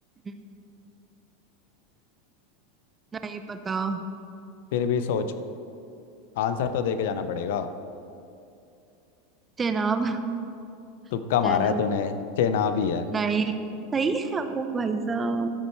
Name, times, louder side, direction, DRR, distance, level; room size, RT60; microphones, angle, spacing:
voice 1, 3.2-4.0 9.6-10.2 11.4-11.9 13.1-13.6 13.9-15.5, right 4 dB, 20° right, 8 dB, 0.7 m, -27 dB
voice 2, 4.7-5.3 6.4-7.7 11.1-13.1, left 7 dB, 70° left, 10 dB, 0.6 m, -25 dB
13.5 x 5.3 x 4.5 m, 2.6 s
hypercardioid pair, 95°, 0 cm